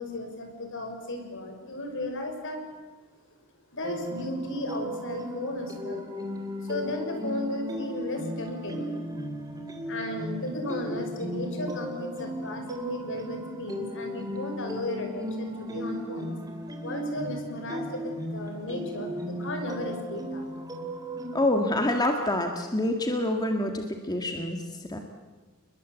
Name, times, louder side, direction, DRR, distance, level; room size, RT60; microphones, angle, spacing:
voice 1, 0.0-2.6 3.7-6.1 6.6-8.9 9.9-16.4 16.8-20.5, left 1 dB, 60° left, 4 dB, 6.4 m, -35 dB
sound 1, 3.8-21.5, equal, 15° right, 3.4 m, -36 dB
voice 2, 21.3-25.0, left 1 dB, 20° left, 4 dB, 1.9 m, -27 dB
30.0 x 21.5 x 8.3 m, 1.4 s
head